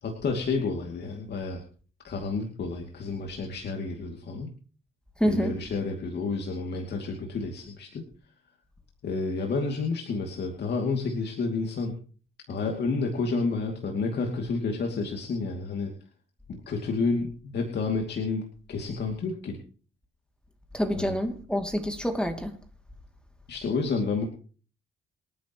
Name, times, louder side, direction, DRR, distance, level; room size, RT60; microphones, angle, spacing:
voice 1, 0.0-1.6 2.0-4.5 5.2-8.0 9.0-11.9 12.5-15.9 16.5-19.6 21.0-21.1 23.5-24.2, left 4 dB, 60° left, 2.6 m, -30 dB
voice 2, 5.2-5.6 20.7-22.6, equal, 5° left, 2.6 m, -27 dB
26.5 x 9.5 x 3.1 m
cardioid pair, 90°, 20 cm